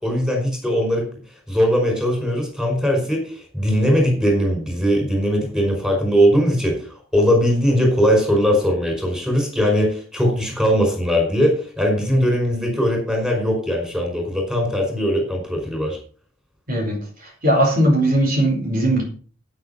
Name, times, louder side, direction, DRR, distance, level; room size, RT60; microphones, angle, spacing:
voice 1, 0.0-1.1 1.5-16.0, equal, 5° right, 2 dB, 5.3 m, -20 dB
voice 2, 16.7-17.0 17.4-19.0, right 1 dB, 45° right, 0 dB, 4.2 m, -18 dB
9.7 x 9.1 x 5.7 m, 0.41 s
head